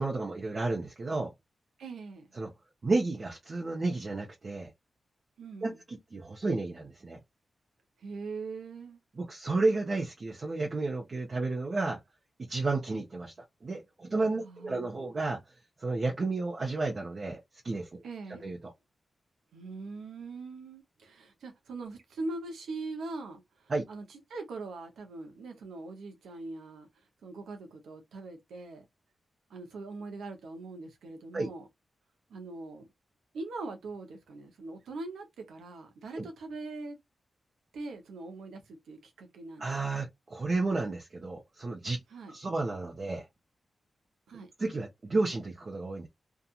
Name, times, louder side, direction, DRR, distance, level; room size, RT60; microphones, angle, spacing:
voice 1, 0.0-1.3 2.4-2.5 2.8-4.7 5.6-7.2 9.2-12.0 12.5-13.3 13.6-15.4 15.8-17.4 17.6-18.0 18.4-18.6 23.7-23.8 31.3-31.5 36.2-36.3 39.6-42.0 42.3-43.2 44.6-46.1, right 3 dB, 55° right, 0.8 m, -32 dB
voice 2, 1.8-2.3 5.4-5.8 8.0-9.0 14.4-15.1 18.0-18.5 19.5-26.9 27.2-28.8 29.5-31.7 32.3-32.9 33.3-37.0 37.7-39.7 42.1-42.4 44.3-44.5, right 3 dB, 85° right, 0.8 m, -42 dB
2.8 x 2.4 x 2.4 m
supercardioid pair, 40°, 0 cm